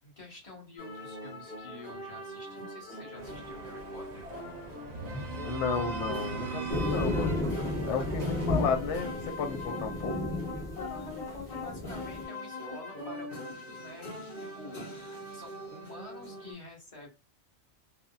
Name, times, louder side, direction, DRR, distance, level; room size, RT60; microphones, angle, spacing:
voice 1, 0.0-4.4 7.9-8.3 10.7-17.1, left 2 dB, 30° left, 1.2 m, -48 dB
sound 1, 0.8-16.5, left 1 dB, 50° left, 1.6 m, -42 dB
sound 2, 3.2-8.6, right 2 dB, 50° right, 0.5 m, -39 dB
voice 2, 5.4-7.5 7.8-10.3, left 5 dB, 85° left, 0.9 m, -33 dB
sound 3, 6.7-12.2, left 1 dB, 5° left, 0.8 m, -33 dB
3.6 x 2.0 x 2.3 m
omnidirectional pair, 1.2 m